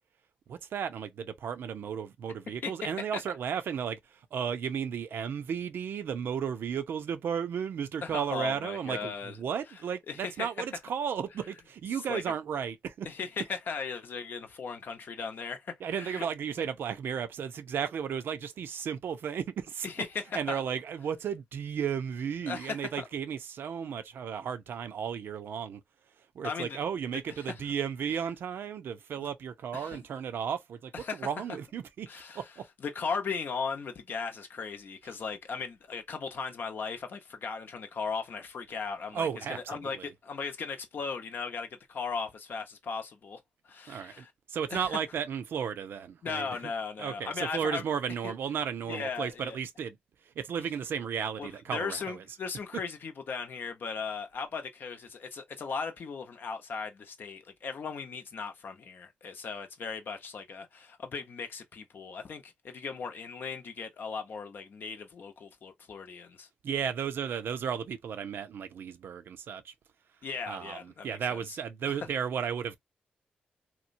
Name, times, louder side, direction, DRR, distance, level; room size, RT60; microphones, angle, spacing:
voice 1, 0.5-13.1 15.8-19.9 20.3-25.8 26.3-32.1 32.3-32.6 39.1-40.1 43.9-46.7 47.0-50.0 50.4-52.2 66.6-69.7 70.5-72.8, right 7 dB, 75° right, 0.5 m, -34 dB
voice 2, 8.0-9.4 10.1-10.5 12.1-12.2 13.0-16.3 19.8-20.6 22.4-23.1 26.4-26.8 27.4-27.5 29.2-29.3 29.7-30.0 30.9-31.3 32.1-32.4 32.8-43.4 43.7-44.3 44.7-45.0 46.2-47.8 48.2-48.3 48.9-49.6 51.4-66.5 70.2-71.6, left 5 dB, 65° left, 0.7 m, -37 dB
3.0 x 2.1 x 2.5 m
supercardioid pair, 45°, 4 cm